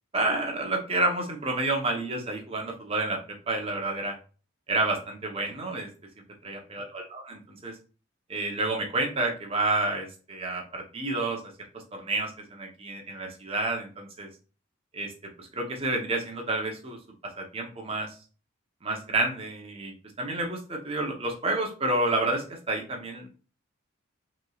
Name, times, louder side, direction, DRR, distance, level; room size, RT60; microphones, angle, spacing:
voice 1, 0.1-3.2 3.5-4.2 4.7-5.9 6.4-7.7 8.3-11.4 11.9-14.3 14.9-15.1 15.4-17.0 17.4-18.1 18.8-23.3, right 2 dB, 25° right, 1 dB, 0.8 m, -29 dB
5.2 x 3.2 x 2.3 m, 0.37 s
head